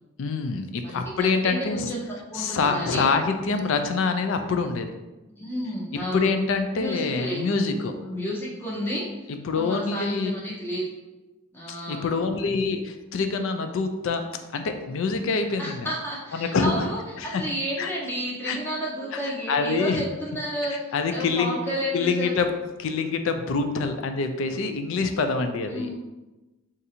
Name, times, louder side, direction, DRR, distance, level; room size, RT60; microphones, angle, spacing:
voice 1, 0.2-1.9 2.3-4.9 6.1-8.0 9.3-10.3 11.7-14.2 14.5-15.9 16.3-16.9 17.2-17.4 17.8-17.9 18.5-18.6 19.1-19.2 19.5-20.0 20.7-21.6 21.9-22.5 22.8-26.0, left 4 dB, 60° left, 7 dB, 0.3 m, -26 dB
voice 2, 0.8-2.0 2.3-3.1 3.5-3.7 5.4-6.3 6.7-7.6 8.0-9.0 9.5-10.8 11.5-12.2 15.6-22.4 25.7-26.0, equal, 10° left, -5 dB, 0.7 m, -31 dB
2.6 x 2.5 x 4.1 m, 1.1 s
head